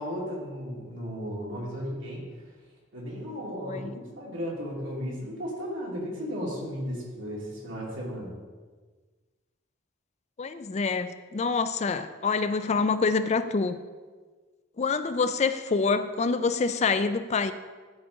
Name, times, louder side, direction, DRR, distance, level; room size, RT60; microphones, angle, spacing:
voice 1, 0.0-2.2 2.9-8.3, equal, 80° right, -4 dB, 2.6 m, -35 dB
voice 2, 3.6-3.9 10.4-13.8 14.8-17.5, left 4 dB, 35° left, 11 dB, 0.4 m, -26 dB
12.0 x 5.0 x 3.9 m, 1.4 s
head